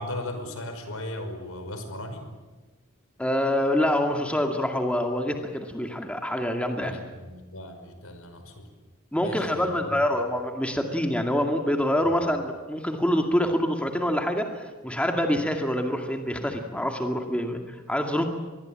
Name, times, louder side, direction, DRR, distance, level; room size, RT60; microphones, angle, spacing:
voice 1, 0.0-2.3 6.8-8.7 9.2-10.1, left 1 dB, 85° left, 7 dB, 5.4 m, -37 dB
voice 2, 3.2-7.0 9.1-14.5 14.8-18.2, left 1 dB, 5° left, 3 dB, 2.2 m, -26 dB
25.5 x 21.0 x 8.8 m, 1.3 s
head